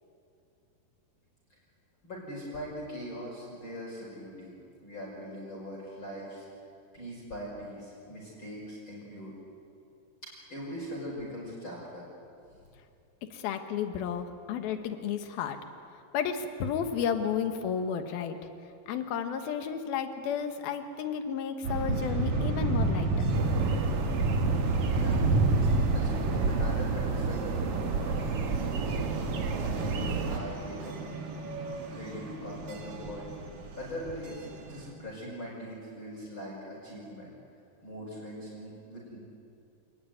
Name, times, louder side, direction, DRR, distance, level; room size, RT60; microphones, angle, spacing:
voice 1, 2.0-6.5 6.9-9.3 10.5-12.1 12.5-12.6 24.7-25.3 25.6-27.6 28.0-29.1 29.6-31.0 31.8-33.3 33.8-37.3 37.8-39.2, equal, 30° left, -5 dB, 6.0 m, -41 dB
voice 2, 13.3-15.6 16.1-18.4 18.9-23.1, left 7 dB, 70° left, 6 dB, 3.2 m, -32 dB
sound 1, 21.6-34.9, right 3 dB, 50° right, 3.3 m, -31 dB
sound 2, 23.3-30.4, right 4 dB, 65° right, 1.4 m, -31 dB
28.0 x 19.5 x 9.5 m, 2.6 s
omnidirectional pair, 4.7 m